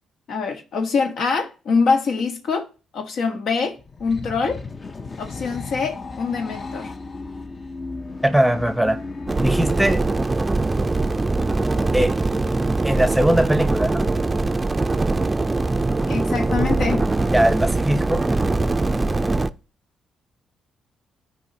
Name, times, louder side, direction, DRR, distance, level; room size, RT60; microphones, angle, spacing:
voice 1, 0.3-2.7 2.9-4.6 5.2-6.9 16.1-17.1, left 4 dB, 70° left, 1.3 m, -24 dB
sound 1, 3.8-10.0, left 3 dB, 30° left, 0.6 m, -35 dB
voice 2, 8.2-9.0 9.4-10.0 11.9-12.1 12.8-14.0 17.3-18.2, right 1 dB, ahead, 0.8 m, -20 dB
sound 2, 9.3-19.5, right 2 dB, 20° right, 0.4 m, -22 dB
13.5 x 4.7 x 2.8 m
cardioid pair, 90°, 0 cm